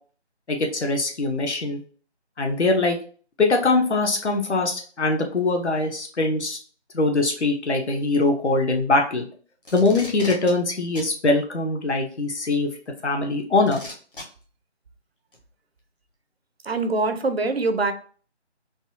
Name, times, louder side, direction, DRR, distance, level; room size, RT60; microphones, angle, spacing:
voice 1, 0.5-1.8 2.4-3.0 3.4-6.6 6.9-9.3 9.7-12.7 13.0-13.8, left 2 dB, 70° left, 1.0 m, -22 dB
Packing tape duct tape, 9.6-10.5 11.0-11.1 12.4-12.5 13.7-14.2 15.3-15.4, left 1 dB, 50° left, 1.2 m, -37 dB
voice 2, 16.6-17.9, right 3 dB, 60° right, 0.5 m, -23 dB
4.0 x 2.3 x 2.6 m
figure-of-eight pair, 170°, 35 cm